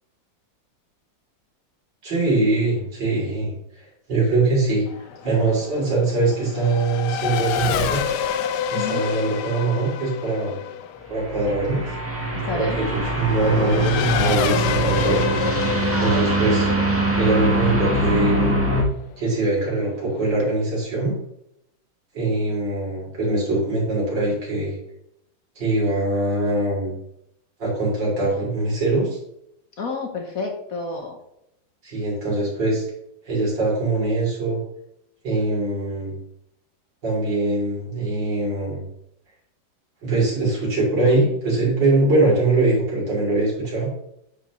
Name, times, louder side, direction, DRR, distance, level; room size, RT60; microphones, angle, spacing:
voice 1, 2.0-4.8 5.2-8.0 8.7-10.6 11.1-12.0 12.5-15.4 16.0-16.7 17.2-18.6 19.2-21.1 22.1-24.8 25.6-27.0 27.6-29.2 31.8-32.8 33.2-34.6 35.2-36.2 37.0-38.9 40.0-43.9, right 2 dB, 70° right, -5 dB, 4.0 m, -22 dB
Race car auto racing / Accelerating revving vroom, 4.9-18.9, left 9 dB, 70° left, 1.2 m, -28 dB
voice 2, 8.7-9.1 12.5-12.8 15.9-16.4 29.8-31.2, left 3 dB, 55° left, 3 dB, 1.3 m, -30 dB
sound 1, 11.1-18.8, right 1 dB, 10° right, 0.9 m, -23 dB
9.5 x 5.9 x 3.1 m, 0.78 s
omnidirectional pair, 2.1 m